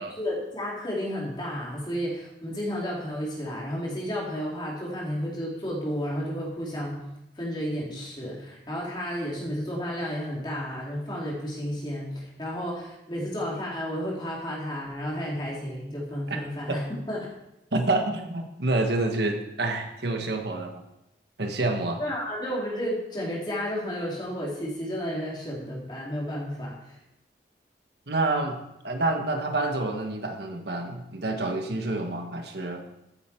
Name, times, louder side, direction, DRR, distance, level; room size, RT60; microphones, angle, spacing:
voice 1, 0.2-7.0 7.4-17.3 22.0-27.0, equal, 25° left, -4 dB, 3.9 m, -32 dB
voice 2, 17.7-20.8 21.4-22.0 28.1-32.8, right 2 dB, 70° right, 4 dB, 1.6 m, -28 dB
14.5 x 9.0 x 4.7 m, 0.88 s
head